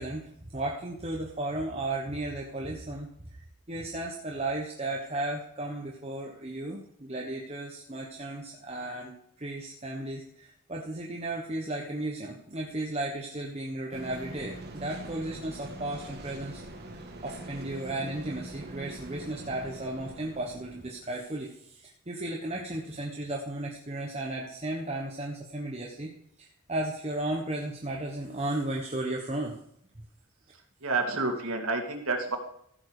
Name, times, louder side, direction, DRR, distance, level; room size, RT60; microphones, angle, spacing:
voice 1, 0.0-16.6 16.9-26.1 26.4-29.6, right 2 dB, 30° right, -1 dB, 1.2 m, -35 dB
sound 1, 13.9-21.2, right 1 dB, 50° right, 1.6 m, -43 dB
voice 2, 30.8-32.4, right 3 dB, 85° right, 3 dB, 2.3 m, -29 dB
15.0 x 7.3 x 5.0 m, 0.70 s
head